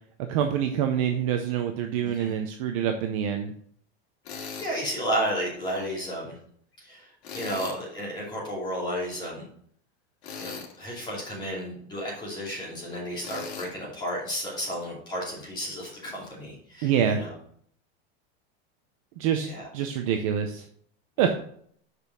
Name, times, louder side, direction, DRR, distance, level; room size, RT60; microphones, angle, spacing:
voice 1, 0.3-3.5 16.8-17.2 19.2-19.5 19.7-20.7 21.2-21.3, right 9 dB, 35° right, 5 dB, 0.5 m, -26 dB
Tools, 4.2-4.7 7.2-7.8 10.2-10.8 13.2-13.7, left 5 dB, 90° left, 2.1 m, -38 dB
voice 2, 4.3-6.4 6.8-9.4 10.4-17.3 19.4-19.7, equal, 15° left, -5 dB, 2.7 m, -33 dB
6.7 x 5.3 x 6.0 m, 0.63 s
supercardioid pair, 180°, 31 cm